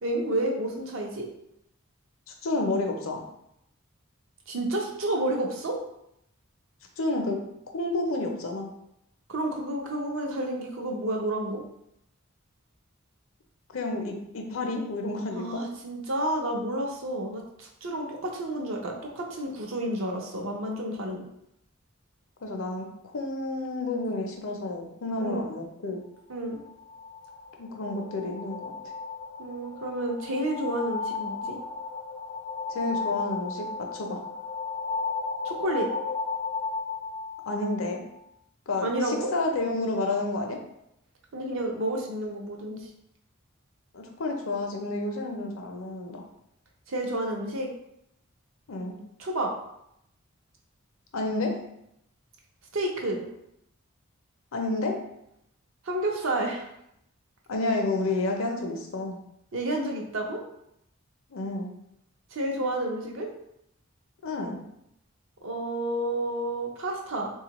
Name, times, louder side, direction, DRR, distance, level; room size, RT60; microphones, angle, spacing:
voice 1, 0.0-1.3 4.5-5.8 9.3-11.6 15.4-21.3 25.2-25.5 26.3-26.6 29.4-31.6 35.4-35.9 38.8-39.3 41.3-42.9 46.9-47.7 49.2-49.5 52.7-53.2 55.8-56.7 59.5-60.4 62.3-63.3 65.4-67.3, right 1 dB, 65° right, 0 dB, 0.6 m, -30 dB
voice 2, 2.4-3.2 7.0-7.4 7.7-8.7 13.7-15.6 22.4-22.9 23.1-26.0 27.6-28.7 32.7-33.6 33.9-34.2 37.5-38.0 38.7-40.6 43.9-46.2 48.7-49.0 51.1-51.6 54.5-55.0 57.5-59.2 61.3-61.7 64.2-64.6, left 2 dB, 70° left, 2 dB, 0.6 m, -30 dB
sound 1, 26.5-38.2, left 4 dB, 25° left, 0.3 m, -35 dB
3.5 x 2.3 x 2.9 m, 0.79 s
head